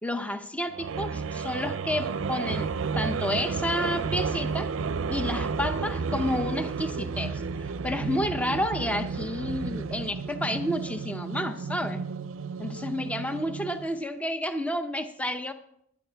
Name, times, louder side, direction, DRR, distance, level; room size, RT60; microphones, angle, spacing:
voice 1, 0.0-4.7 5.1-12.0 12.6-15.5, left 1 dB, 5° left, 8 dB, 0.6 m, -30 dB
sound 1, 0.7-14.0, right 5 dB, 65° right, 0.5 m, -32 dB
19.5 x 10.5 x 3.4 m, 0.73 s
head